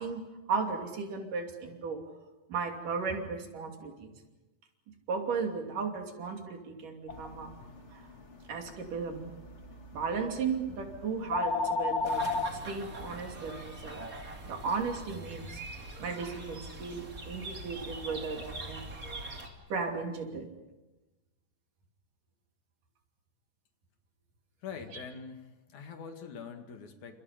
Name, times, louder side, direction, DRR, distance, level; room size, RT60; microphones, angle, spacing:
voice 1, 0.0-2.0 2.5-4.1 5.1-7.5 7.9-8.1 8.5-9.3 9.9-12.4 12.6-14.0 14.5-19.4 19.7-20.5 24.9-25.0, right 5 dB, 75° right, 3 dB, 4.4 m, -35 dB
sound 1, 7.1-12.5, left 3 dB, 25° left, 1.7 m, -35 dB
sound 2, 12.0-19.5, right 2 dB, 25° right, 3.0 m, -43 dB
voice 2, 24.6-27.2, left 6 dB, 65° left, 6 dB, 3.3 m, -44 dB
29.5 x 28.0 x 5.2 m, 1.1 s
omnidirectional pair, 3.8 m